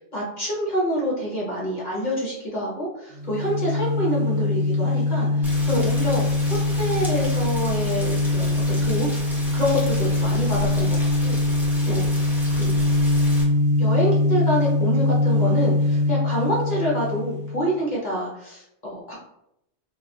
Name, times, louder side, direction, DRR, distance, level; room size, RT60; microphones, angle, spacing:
voice 1, 0.1-9.1 9.5-11.4 11.8-12.1 12.5-12.7 13.8-19.1, equal, 45° left, -5 dB, 0.9 m, -27 dB
sound 1, 3.1-17.7, left 2 dB, 50° right, 0.9 m, -22 dB
Rain, 5.4-13.4, equal, ahead, 0.6 m, -35 dB
2.3 x 2.3 x 3.9 m, 0.80 s
omnidirectional pair, 1.2 m